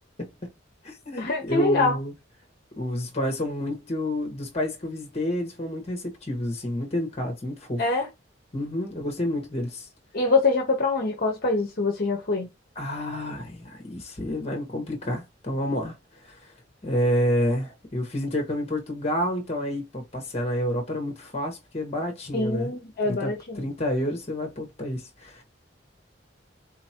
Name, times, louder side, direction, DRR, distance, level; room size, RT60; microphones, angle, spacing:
voice 1, 0.2-0.5 0.8-2.1 2.8-7.8 8.5-9.9 12.7-15.9 16.2-16.4 16.8-22.7 23.0-25.4, left 1 dB, 35° left, 1.4 m, -29 dB
voice 2, 1.2-2.0 7.8-8.1 10.1-12.5 22.3-23.7, left 3 dB, 50° left, 1.0 m, -24 dB
4.1 x 2.9 x 2.9 m
head